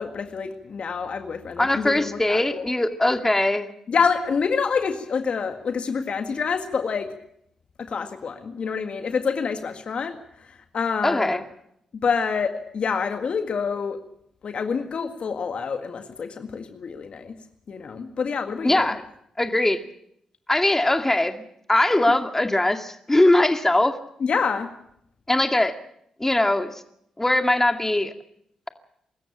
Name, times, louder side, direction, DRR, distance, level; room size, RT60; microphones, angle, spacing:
voice 1, 0.0-2.6 3.9-7.1 7.9-10.2 10.7-11.4 11.9-14.0 14.4-17.3 17.7-18.9 24.2-24.7, left 5 dB, 60° left, 7 dB, 1.8 m, -27 dB
voice 2, 1.6-3.7 11.0-11.4 18.6-19.0 19.4-19.8 20.5-21.4 21.7-24.0 25.3-25.8 26.2-26.7 27.2-28.1, left 1 dB, 15° left, 7 dB, 2.2 m, -21 dB
24.5 x 14.0 x 8.5 m, 0.74 s
hypercardioid pair, 40°, 2 cm